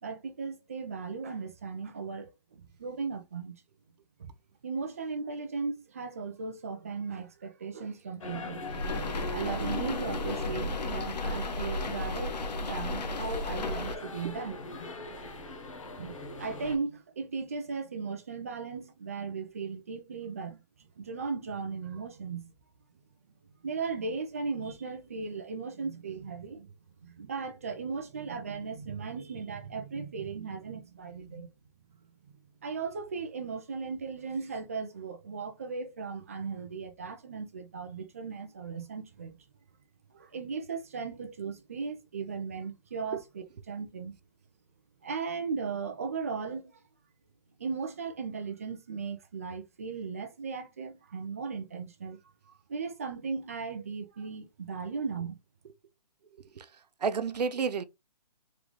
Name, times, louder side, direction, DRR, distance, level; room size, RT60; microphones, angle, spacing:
voice 1, 0.0-3.6 4.2-4.3 4.6-8.6 9.3-12.4 12.6-14.5 16.0-22.5 23.6-26.7 27.0-31.5 32.6-39.4 40.1-44.2 45.0-46.8 47.6-52.2 52.5-55.4, right 5 dB, 20° right, 0.5 m, -37 dB
sound 1, 8.2-16.8, left 2 dB, 50° left, 1.1 m, -41 dB
sound 2, 8.6-14.0, left 2 dB, 85° left, 1.0 m, -34 dB
voice 2, 56.3-57.8, right 5 dB, 75° right, 0.7 m, -32 dB
3.8 x 3.4 x 3.1 m
hypercardioid pair, 175°, 21 cm